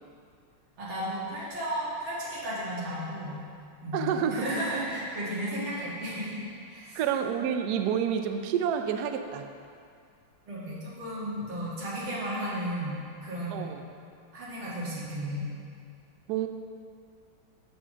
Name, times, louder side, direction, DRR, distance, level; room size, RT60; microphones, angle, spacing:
voice 1, 0.8-3.4 3.8-7.0 10.5-13.0 13.2-13.6 14.3-15.4, equal, 70° right, -8 dB, 2.7 m, -34 dB
voice 2, 3.9-4.4 6.9-9.5 13.5-13.8 16.3-16.5, right 8 dB, 90° right, 7 dB, 0.8 m, -28 dB
6.3 x 5.8 x 6.1 m, 2.4 s
omnidirectional pair, 2.3 m